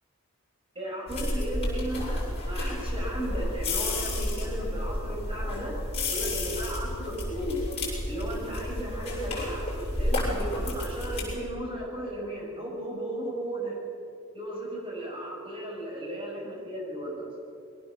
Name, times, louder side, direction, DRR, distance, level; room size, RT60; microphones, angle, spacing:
voice 1, 0.7-5.8 6.1-7.6 8.1-9.6 10.0-13.8 14.3-17.3, right 1 dB, 25° right, -2 dB, 6.2 m, -35 dB
sound 1, 1.1-11.4, left 1 dB, 30° left, 7.1 m, -31 dB
22.5 x 18.0 x 7.2 m, 2.4 s
head